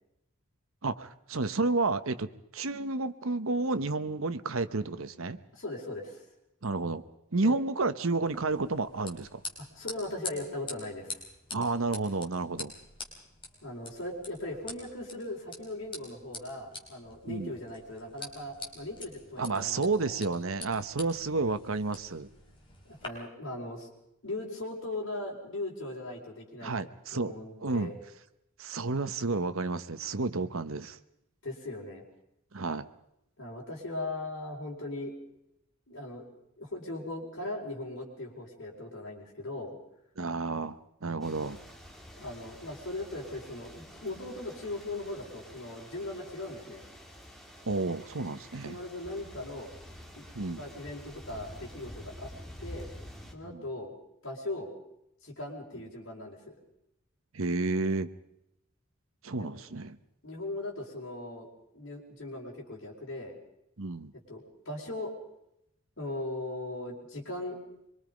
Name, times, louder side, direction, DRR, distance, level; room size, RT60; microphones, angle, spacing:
voice 1, 0.8-2.3 2.5-5.4 6.6-7.0 7.3-9.4 11.5-12.7 17.3-17.5 19.4-22.3 26.6-27.3 27.6-27.9 28.6-31.0 32.5-32.9 40.2-41.6 47.7-48.8 50.3-50.6 53.4-53.6 57.3-58.1 59.2-60.0 63.8-64.1, right 3 dB, 75° right, 12 dB, 1.0 m, -31 dB
voice 2, 5.5-6.2 7.4-7.6 9.6-11.2 13.6-20.2 22.8-23.9 24.2-26.7 27.1-27.9 31.4-32.0 33.4-35.1 35.9-36.3 36.6-39.7 42.2-46.8 48.6-49.7 50.1-50.3 50.6-52.3 52.6-52.9 53.3-53.9 54.2-54.7 55.2-56.5 59.4-59.5 60.2-61.5 61.7-63.3 64.3-65.1 66.0-67.6, left 2 dB, 60° left, -3 dB, 4.7 m, -39 dB
sound 1, 8.2-23.1, left 3 dB, 25° left, 4.4 m, -46 dB
sound 2, 41.2-53.3, equal, ahead, 2.5 m, -48 dB
25.0 x 23.5 x 5.3 m, 0.81 s
head